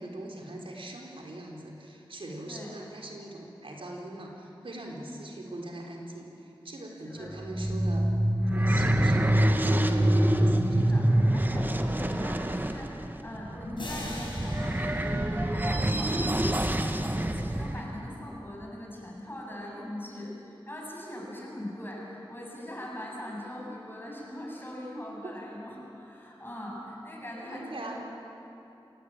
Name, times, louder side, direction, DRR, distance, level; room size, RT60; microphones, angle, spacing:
voice 1, 0.0-8.1 8.5-11.1 25.2-25.3 27.5-28.0, right 1 dB, 80° right, -1 dB, 4.0 m, -42 dB
sound 1, 7.3-17.8, right 1 dB, 20° right, 1.4 m, -26 dB
voice 2, 10.9-13.0 13.2-28.0, left 1 dB, 25° left, -3 dB, 8.0 m, -41 dB
sound 2, 13.8-16.6, left 1 dB, 65° left, 5.4 m, -42 dB
26.5 x 18.5 x 8.9 m, 2.9 s
wide cardioid pair, 65°, 9 cm